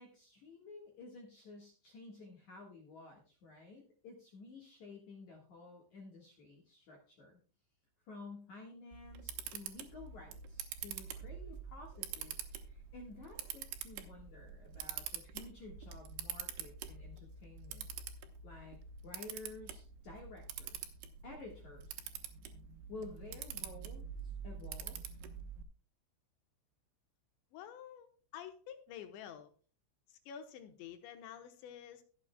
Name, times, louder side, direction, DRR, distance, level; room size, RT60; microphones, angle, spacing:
voice 1, 0.0-7.4 8.0-17.9 18.4-18.8 19.0-22.0 22.9-24.1 24.4-25.0, left 3 dB, 60° left, 0 dB, 2.0 m, -52 dB
Camera, 8.9-25.6, right 8 dB, 70° right, 2.8 m, -46 dB
voice 2, 27.5-29.5 30.1-32.0, left 9 dB, 75° left, 8 dB, 3.1 m, -49 dB
22.5 x 7.6 x 2.2 m, 0.38 s
omnidirectional pair, 5.5 m